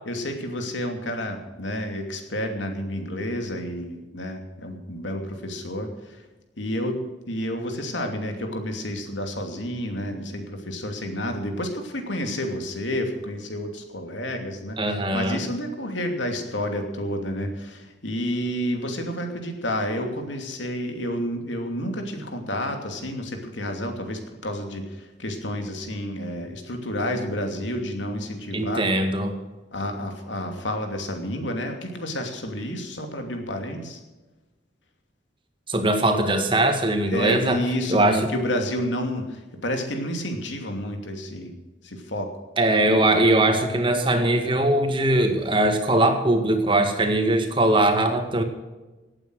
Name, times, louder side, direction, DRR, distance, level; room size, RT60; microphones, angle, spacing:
voice 1, 0.1-6.2 6.6-28.8 29.7-34.0 37.1-41.5 41.8-42.3, equal, 85° left, 4 dB, 2.8 m, -30 dB
voice 2, 14.8-15.4 28.5-29.3 35.7-37.6 37.9-38.3 42.6-48.4, right 1 dB, 25° right, 5 dB, 2.0 m, -21 dB
17.5 x 9.0 x 6.4 m, 1.2 s
head